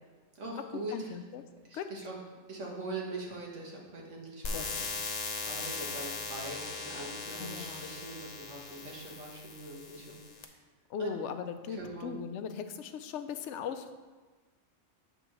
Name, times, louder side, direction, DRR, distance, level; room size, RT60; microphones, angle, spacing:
voice 1, 0.4-1.2 1.6-2.2 2.5-4.7 5.4-10.6 11.0-11.1 11.7-12.2, right 2 dB, 85° right, -2 dB, 1.8 m, -42 dB
voice 2, 0.9-1.4 1.7-1.9 4.5-4.9 7.4-7.9 10.9-13.9, left 7 dB, 75° left, 9 dB, 0.9 m, -39 dB
sound 1, 4.4-10.4, left 4 dB, 45° left, 0.6 m, -39 dB
8.1 x 3.6 x 6.0 m, 1.3 s
omnidirectional pair, 1.2 m